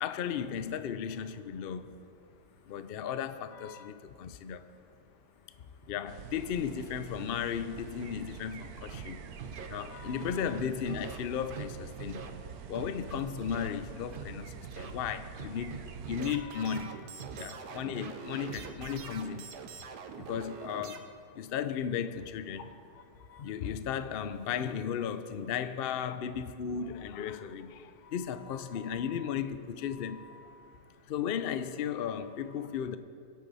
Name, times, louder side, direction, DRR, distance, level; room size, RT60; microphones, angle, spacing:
voice 1, 0.0-1.9 2.7-4.7 5.8-9.2 9.7-12.2 12.7-19.5 20.2-21.1 21.3-22.7 23.3-30.8 31.1-33.0, left 8 dB, 70° left, 0.5 m, -35 dB
voice 2, 2.2-2.8 4.2-5.9 9.1-9.7 12.0-12.1 12.6-12.7 14.6-15.0 17.3-17.7 19.7-20.3 21.3-21.5 22.5-23.5 27.8-28.1 30.6-31.1, left 4 dB, 90° left, 1.7 m, -61 dB
sound 1, 6.1-16.4, right 7 dB, 70° right, 1.1 m, -46 dB
Scratching (performance technique), 8.9-9.0 9.4-9.7 10.2-11.2 11.5-11.7 12.0-12.3 12.7-13.7 14.1-14.3 14.6-14.9 15.4-16.3 16.7-16.9 17.2-19.0, right 6 dB, 45° right, 0.8 m, -43 dB
sound 2, 16.1-21.0, right 6 dB, 85° right, 1.4 m, -45 dB
22.0 x 8.5 x 4.1 m
omnidirectional pair, 1.7 m